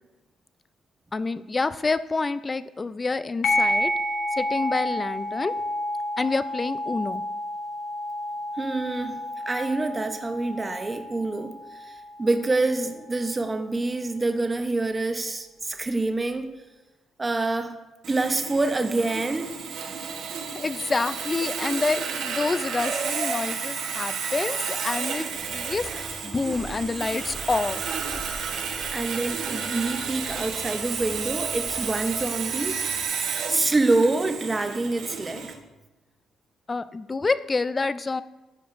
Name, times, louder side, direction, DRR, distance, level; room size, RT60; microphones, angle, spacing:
voice 1, 1.1-3.9 4.4-5.5 6.2-7.2 20.5-27.8 36.7-38.2, left 3 dB, 25° left, 14 dB, 0.3 m, -28 dB
sound 1, 3.4-12.4, left 1 dB, 60° left, 1.1 m, -30 dB
voice 2, 8.6-16.6 17.2-17.8 18.1-19.6 28.9-32.8 33.5-35.5, right 2 dB, 25° right, 7 dB, 0.8 m, -26 dB
Sawing, 18.0-35.5, right 6 dB, 75° right, 1.0 m, -32 dB
Walk footsteps, 25.4-33.0, right 1 dB, ahead, 1.7 m, -43 dB
13.0 x 4.9 x 2.6 m, 1.1 s
cardioid pair, 90°, 0 cm